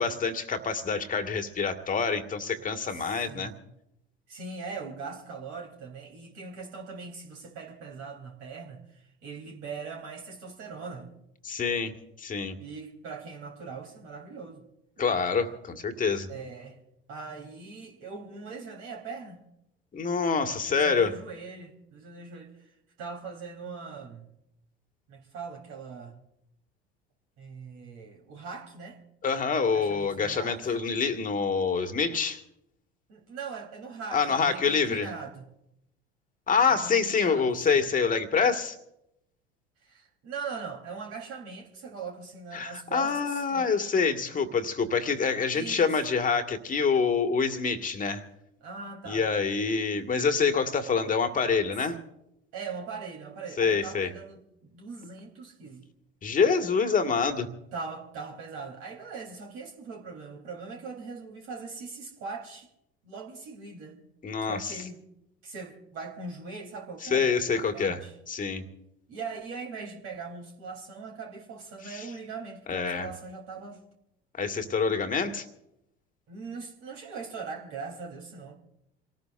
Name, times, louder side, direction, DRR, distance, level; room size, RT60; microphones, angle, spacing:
voice 1, 0.0-3.5 11.4-11.9 12.2-12.6 15.0-16.3 19.9-21.1 29.2-32.4 34.1-35.1 36.5-38.8 42.5-48.2 49.1-52.0 53.6-54.1 56.2-57.5 64.2-64.8 67.0-68.0 68.3-68.7 71.9-72.1 72.7-73.1 74.3-75.4, left 5 dB, 25° left, 6 dB, 1.9 m, -26 dB
voice 2, 2.9-3.5 4.3-11.2 12.6-14.6 16.3-16.8 17.1-19.4 20.7-24.3 25.1-26.1 27.4-29.0 29.6-30.8 33.1-35.5 36.7-37.8 39.8-43.7 44.3-44.4 45.5-46.0 48.6-49.3 52.5-55.8 57.7-62.7 63.0-64.1 64.4-65.0 65.4-68.1 69.1-73.8 76.3-78.6, right 4 dB, 55° right, 1 dB, 3.8 m, -41 dB
28.0 x 18.5 x 2.6 m, 0.84 s
figure-of-eight pair, 65°, 30 cm